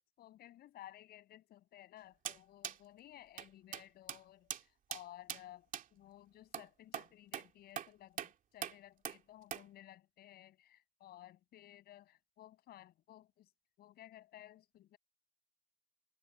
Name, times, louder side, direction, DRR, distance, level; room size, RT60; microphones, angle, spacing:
voice 1, 0.2-13.5 13.8-15.0, left 13 dB, 70° left, 7.3 m, -57 dB
sound 1, 2.3-2.4 2.6-2.8 3.4-3.5 3.7-4.2 4.5-4.6 4.9-5.0 5.3-5.4 5.7-5.9 6.5-6.7 6.9-7.1 7.3-7.5 7.8-7.9 8.2-8.3 8.6-8.8 9.1-9.2 9.5-9.6, right 9 dB, 50° right, 2.6 m, -41 dB
cardioid pair, 110°, 17 cm